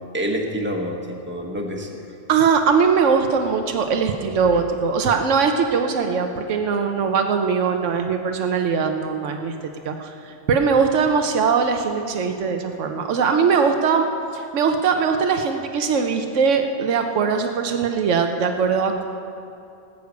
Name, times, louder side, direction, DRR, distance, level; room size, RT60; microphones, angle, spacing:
voice 1, 0.1-2.1, equal, 10° right, 1 dB, 1.2 m, -27 dB
voice 2, 2.3-9.6 9.8-14.1 14.3-19.0, right 5 dB, 90° right, 5 dB, 1.1 m, -21 dB
19.0 x 6.6 x 8.1 m, 2.7 s
omnidirectional pair, 1.2 m